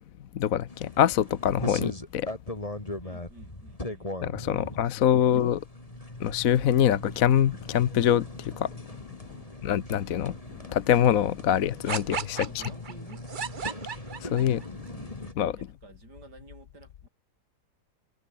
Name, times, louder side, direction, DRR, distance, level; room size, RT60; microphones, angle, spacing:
voice 1, 0.3-2.3 4.2-5.6 6.2-8.7 9.6-10.4 10.7-12.4 14.2-14.6 15.0-15.6, left 10 dB, 60° left, 1.2 m, -24 dB
sound 1, 0.7-15.3, left 1 dB, 20° left, 3.7 m, -40 dB
voice 2, 3.0-4.2 4.6-5.3 5.8-6.0 9.3-9.8 11.9-13.2 15.6-17.1, right 2 dB, 70° right, 6.2 m, -52 dB
sound 2, 11.9-14.7, right 6 dB, 40° right, 0.8 m, -34 dB
omnidirectional pair, 1.8 m